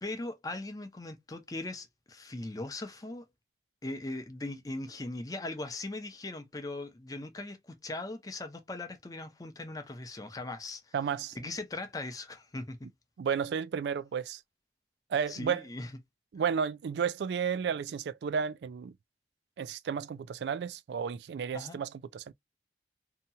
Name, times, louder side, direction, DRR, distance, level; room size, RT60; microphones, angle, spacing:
voice 1, 0.0-3.3 3.8-10.9 11.3-12.9 15.3-15.9 21.5-21.8, left 2 dB, 20° left, 0.5 m, -39 dB
voice 2, 10.9-11.4 13.2-14.4 15.1-15.6 16.3-18.9 19.6-22.3, right 7 dB, 75° right, 0.3 m, -32 dB
2.8 x 2.3 x 2.6 m
head